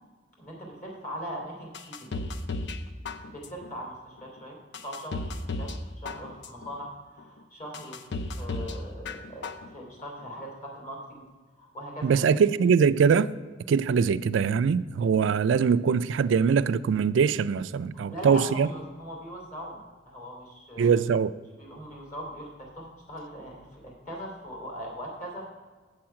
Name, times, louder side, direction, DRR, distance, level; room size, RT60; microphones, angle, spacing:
voice 1, 0.4-2.1 3.2-8.0 8.4-11.2 11.6-12.1 17.9-20.9 21.5-25.5, equal, 45° left, -2 dB, 3.1 m, -40 dB
sound 1, 1.7-2.8 3.1-3.7 4.2-4.3 4.7-5.8 6.1-6.7 7.2-7.3 7.7-8.8 9.1-9.7 10.0-10.1, left 3 dB, 65° left, 0.6 m, -34 dB
voice 2, 12.0-13.3 13.7-18.7 20.8-21.3, right 6 dB, 75° right, 14 dB, 0.3 m, -22 dB
7.8 x 7.5 x 5.8 m, 1.4 s
head